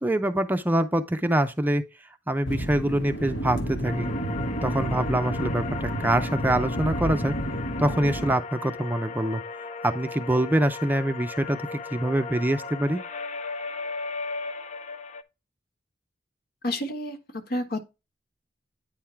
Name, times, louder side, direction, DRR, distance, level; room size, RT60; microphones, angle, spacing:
voice 1, 0.0-1.8 2.3-4.1 4.6-7.3 7.8-9.4 9.8-13.0, right 1 dB, 10° right, 0.5 m, -25 dB
sound 1, 2.5-8.4, equal, 80° left, 1.5 m, -30 dB
sound 2, 3.8-15.2, left 4 dB, 40° left, 0.6 m, -36 dB
voice 2, 16.6-17.2 17.5-17.8, left 1 dB, 60° left, 1.4 m, -29 dB
9.3 x 3.6 x 4.4 m
head